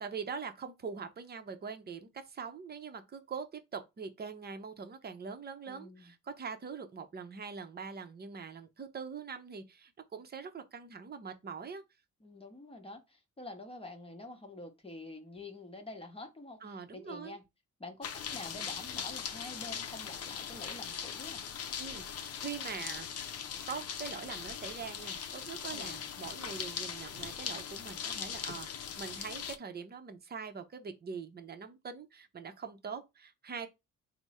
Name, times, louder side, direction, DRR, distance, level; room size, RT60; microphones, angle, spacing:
voice 1, 0.0-11.8 16.6-17.4 21.8-23.3 23.7-28.7 29.0-33.7, right 5 dB, 30° right, 0.7 m, -43 dB
voice 2, 5.7-6.1 12.2-17.4 17.8-21.4 25.7-26.0, left 2 dB, 20° left, 0.9 m, -47 dB
sound 1, 18.0-29.6, left 7 dB, 55° left, 0.6 m, -40 dB
3.4 x 2.1 x 4.1 m
cardioid pair, 90°, 30 cm